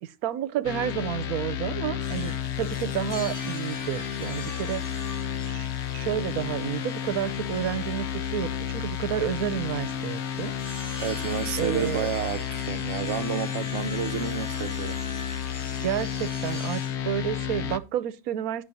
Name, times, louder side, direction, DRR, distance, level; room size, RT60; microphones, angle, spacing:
voice 1, 0.0-4.8 5.5-10.5 11.6-12.1 15.8-18.6, right 11 dB, 85° right, 1.1 m, -30 dB
sound 1, 0.6-17.8, left 9 dB, 65° left, 0.8 m, -32 dB
sound 2, 2.0-17.0, left 1 dB, 80° left, 2.3 m, -43 dB
voice 2, 11.0-15.0, right 8 dB, 60° right, 0.9 m, -30 dB
8.9 x 5.8 x 3.9 m
omnidirectional pair, 1.5 m